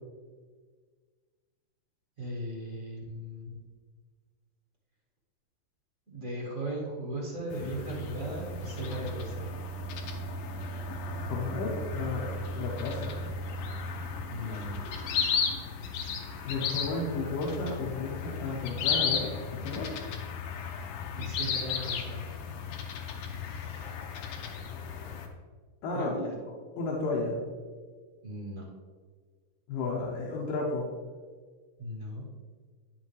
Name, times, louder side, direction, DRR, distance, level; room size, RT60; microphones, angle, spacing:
voice 1, 2.2-3.6 6.1-9.5 14.3-14.8 21.1-22.2 25.9-26.3 28.2-28.6 31.8-32.2, right 1 dB, 50° right, -3 dB, 0.9 m, -37 dB
sound 1, 7.5-25.3, left 5 dB, 90° left, 1.8 m, -35 dB
voice 2, 11.2-13.1 16.4-20.0 25.8-26.2 26.8-27.4 29.7-30.9, left 3 dB, 70° left, -3 dB, 2.2 m, -33 dB
10.0 x 7.6 x 3.2 m, 1.6 s
omnidirectional pair, 4.9 m